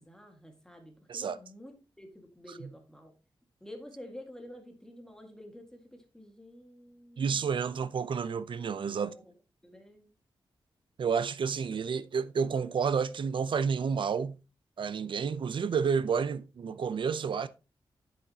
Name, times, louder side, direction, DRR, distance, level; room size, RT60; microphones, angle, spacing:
voice 1, 0.0-3.1 3.6-7.7 9.0-9.2 9.6-10.1, left 1 dB, 5° left, 1.8 m, -49 dB
voice 2, 7.2-9.1 11.0-14.4 14.8-17.5, right 6 dB, 65° right, 0.6 m, -30 dB
9.4 x 7.6 x 2.9 m
wide cardioid pair, 120°, 9 cm